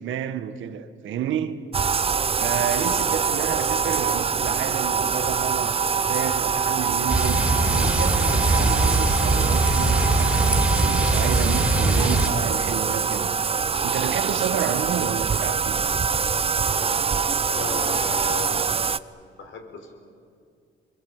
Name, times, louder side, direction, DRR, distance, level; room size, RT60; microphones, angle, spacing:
voice 1, 0.0-1.6 2.3-13.3 13.8-15.8, right 9 dB, 75° right, 1.6 m, -30 dB
Bathtub (filling or washing), 1.7-19.0, right 6 dB, 30° right, 0.7 m, -24 dB
sound 1, 7.1-12.3, right 2 dB, 5° right, 3.7 m, -22 dB
voice 2, 17.5-18.8 19.4-19.9, left 5 dB, 70° left, 4.9 m, -35 dB
26.0 x 22.0 x 8.9 m
cardioid pair, 90°, 20 cm